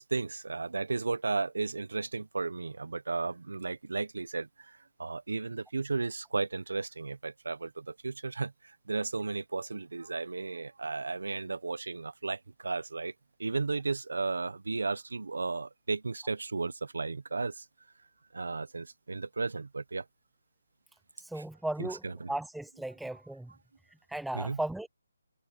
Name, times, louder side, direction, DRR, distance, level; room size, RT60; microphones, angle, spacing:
voice 1, 0.0-13.1 13.4-17.6 18.3-20.0 21.4-21.5 21.8-22.3 24.3-24.6, right 3 dB, 85° right, 1.1 m, -34 dB
voice 2, 21.2-23.5 24.1-24.9, right 1 dB, ahead, 0.6 m, -36 dB
hypercardioid pair, 170°, 0 cm